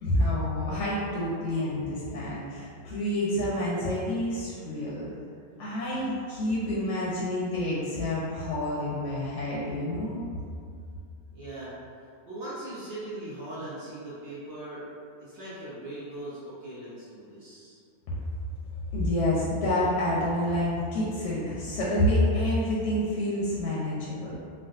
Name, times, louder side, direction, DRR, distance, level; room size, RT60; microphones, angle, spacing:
voice 1, 0.0-5.1 5.6-10.2 18.9-24.3, left 1 dB, 65° left, -6 dB, 0.8 m, -28 dB
voice 2, 11.3-11.7 12.0-14.9 15.2-17.8, right 1 dB, 60° right, -9 dB, 0.8 m, -40 dB
3.5 x 2.2 x 2.4 m, 2.3 s
omnidirectional pair, 1.6 m